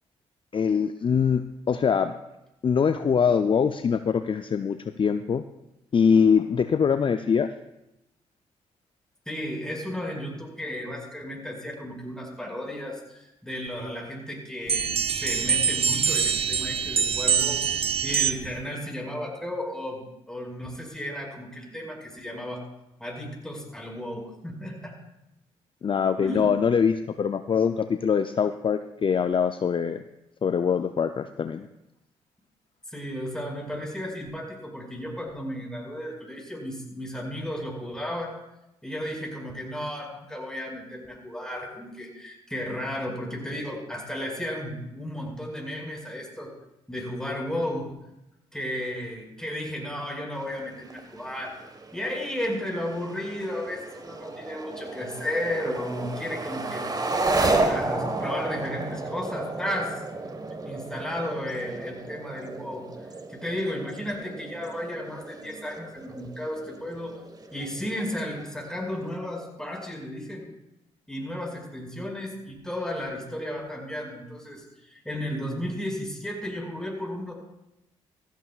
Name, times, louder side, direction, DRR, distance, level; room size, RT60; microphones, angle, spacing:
voice 1, 0.5-2.1 2.6-5.4 5.9-7.5 25.8-30.0 30.4-31.7, left 6 dB, 40° left, 9 dB, 0.5 m, -23 dB
voice 2, 9.3-22.6 23.0-25.0 26.2-26.5 32.9-38.4 38.8-46.5 46.9-47.9 48.5-51.5 51.9-60.0 60.6-62.9 63.3-67.2 67.5-70.5 71.1-77.3, left 1 dB, 5° left, 0 dB, 5.3 m, -34 dB
sound 1, 14.7-18.6, right 7 dB, 45° right, 0.7 m, -24 dB
sound 2, 50.4-69.2, right 2 dB, 30° right, 1.5 m, -33 dB
16.0 x 14.5 x 2.4 m, 0.91 s
supercardioid pair, 55°, 13 cm